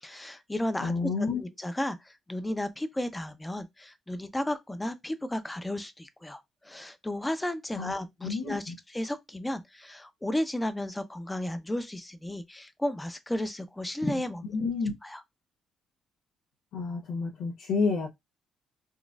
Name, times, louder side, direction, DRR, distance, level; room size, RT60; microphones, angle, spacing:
voice 1, 0.0-14.5 15.0-15.2, left 1 dB, 10° left, 0.5 m, -34 dB
voice 2, 0.8-1.4 7.8-7.9 8.2-8.7 14.5-14.9 16.7-18.1, left 4 dB, 90° left, 0.7 m, -29 dB
3.9 x 2.4 x 2.4 m
cardioid pair, 90°, 0 cm